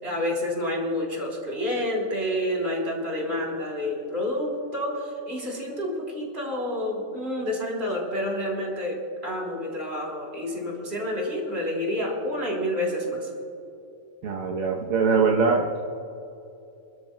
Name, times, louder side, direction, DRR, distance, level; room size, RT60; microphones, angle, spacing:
voice 1, 0.0-13.3, left 1 dB, 45° right, -2 dB, 3.6 m, -29 dB
voice 2, 14.2-15.8, right 5 dB, 75° right, 0 dB, 1.3 m, -22 dB
27.5 x 13.0 x 2.2 m, 2.8 s
omnidirectional pair, 1.4 m